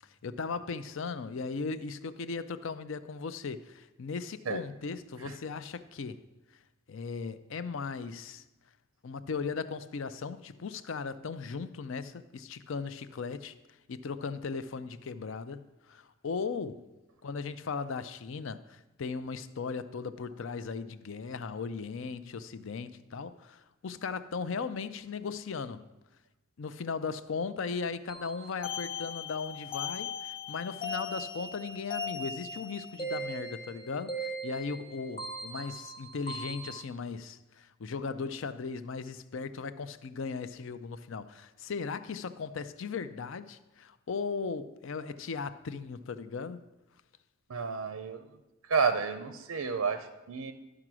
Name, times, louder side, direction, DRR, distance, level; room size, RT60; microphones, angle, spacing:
voice 1, 0.2-6.2 6.9-8.4 9.0-13.6 13.9-16.9 17.2-25.9 26.6-46.6, left 5 dB, 60° left, 0.5 m, -37 dB
sound 1, 28.1-36.8, left 2 dB, 25° left, 0.8 m, -39 dB
voice 2, 47.5-48.2 48.7-50.5, right 5 dB, 90° right, 0.6 m, -30 dB
12.5 x 4.9 x 6.1 m
head